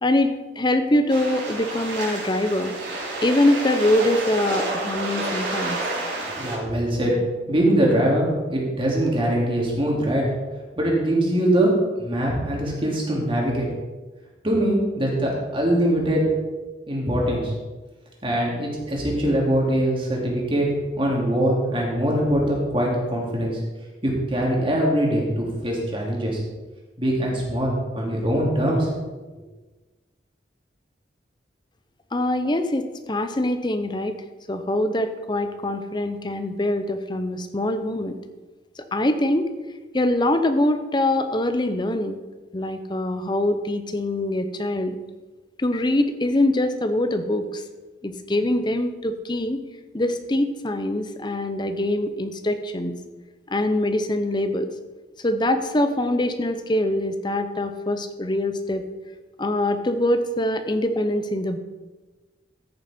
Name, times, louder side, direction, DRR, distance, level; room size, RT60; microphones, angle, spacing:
voice 1, 0.0-2.7 3.2-5.8 32.1-34.1 34.5-38.2 38.8-39.5 39.9-42.2 42.5-45.0 45.6-47.6 48.0-49.6 49.9-53.0 53.5-54.7 55.2-58.8 59.4-61.6, left 1 dB, 25° left, 8 dB, 0.8 m, -23 dB
sound 1, 1.1-6.6, right 2 dB, 80° right, 3.5 m, -29 dB
voice 2, 6.3-7.2 7.5-10.2 10.8-13.7 14.4-16.2 16.9-17.5 18.2-23.6 24.0-26.4 27.0-29.0, right 1 dB, 30° right, -2 dB, 2.6 m, -22 dB
14.5 x 6.8 x 4.3 m, 1.2 s
head